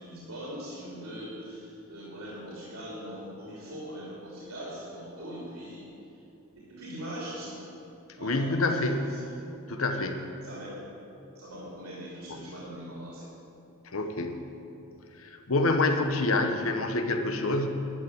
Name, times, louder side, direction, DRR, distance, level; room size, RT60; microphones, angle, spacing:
voice 1, 0.0-5.9 6.7-7.6 8.2-9.3 10.4-10.8 11.3-13.3, equal, 75° right, -6 dB, 3.0 m, -41 dB
voice 2, 8.2-9.1 9.7-10.2 13.9-14.4 15.2-17.7, left 2 dB, 65° left, 5 dB, 1.1 m, -27 dB
11.5 x 7.0 x 9.7 m, 2.7 s
head